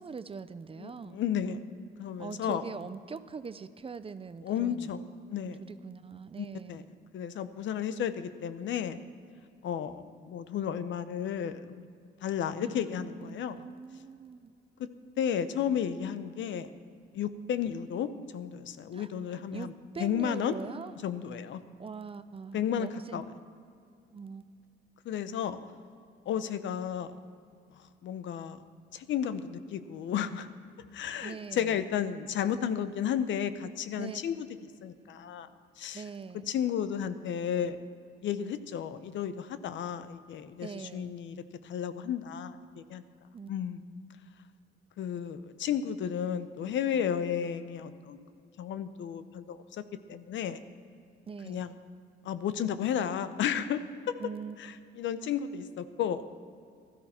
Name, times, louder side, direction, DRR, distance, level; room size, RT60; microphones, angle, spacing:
voice 1, 0.0-1.2 2.2-4.9 5.4-6.8 12.6-14.5 18.9-21.0 21.8-23.2 24.1-24.4 31.2-31.8 34.0-34.2 35.9-36.5 40.6-41.2 43.3-43.5 51.2-51.8 54.2-54.8, right 5 dB, 30° right, 13 dB, 0.5 m, -42 dB
voice 2, 0.8-1.6 2.0-2.6 4.4-5.6 6.4-6.8 7.1-9.0 9.6-11.8 12.2-13.6 15.2-16.7 17.1-19.7 20.0-20.6 21.0-21.6 22.5-23.2 25.0-25.6 26.3-27.1 28.0-28.6 28.9-30.5 30.8-34.5 34.8-35.5 35.8-36.0 36.5-37.8 38.2-43.0 43.5-43.8 45.0-48.2 48.6-49.8 50.1-50.6 51.4-51.7 52.2-53.8 54.1-54.2 54.6-56.3, left 8 dB, 70° left, 12 dB, 0.7 m, -33 dB
16.0 x 13.0 x 4.3 m, 2.3 s
cardioid pair, 90°, 20 cm